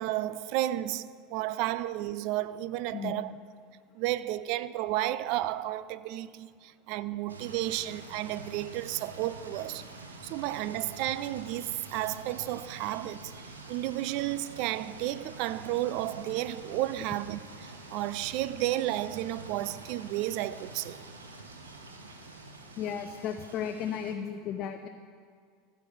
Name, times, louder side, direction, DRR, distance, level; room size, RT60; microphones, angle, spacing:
voice 1, 0.0-3.3 4.0-9.8 10.2-13.3 13.7-21.0, right 14 dB, 55° right, 0.4 m, -32 dB
voice 2, 2.9-3.4 22.8-24.9, left 8 dB, 45° left, 0.6 m, -35 dB
sound 1, 7.3-24.1, right 2 dB, 85° right, 1.1 m, -47 dB
14.5 x 5.9 x 6.6 m
hypercardioid pair, 80°, 0 cm